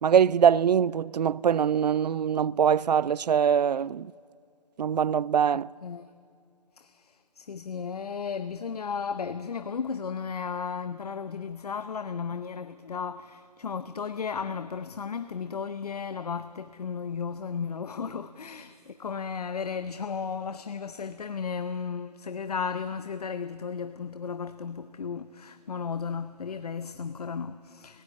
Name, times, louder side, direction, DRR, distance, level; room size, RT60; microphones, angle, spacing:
voice 1, 0.0-4.1 4.8-5.7, right 8 dB, 80° right, 0.4 m, -23 dB
voice 2, 6.8-28.0, left 6 dB, 65° left, 0.8 m, -34 dB
18.5 x 16.5 x 9.6 m
hypercardioid pair, 170°, 21 cm